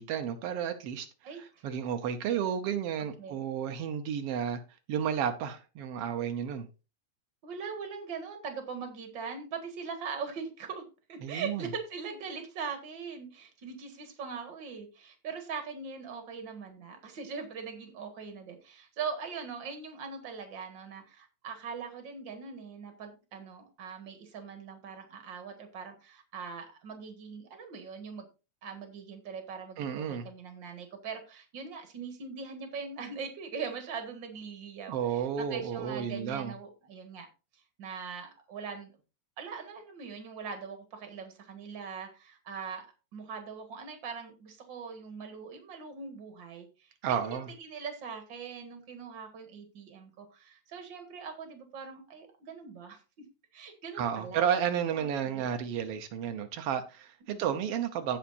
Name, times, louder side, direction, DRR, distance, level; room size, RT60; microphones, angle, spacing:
voice 1, 0.0-1.1 1.3-4.6 4.9-6.7 11.2-11.7 29.8-30.3 34.9-36.5 47.0-47.5 54.0-58.2, right 8 dB, 90° right, 1.3 m, -32 dB
voice 2, 1.2-1.6 3.2-3.4 7.4-10.8 11.1-28.3 28.6-37.3 37.8-38.9 39.4-42.9 43.1-53.3 53.5-54.5 54.9-55.5 57.3-57.5, right 5 dB, 45° right, 1.9 m, -41 dB
16.5 x 5.7 x 2.6 m
omnidirectional pair, 3.8 m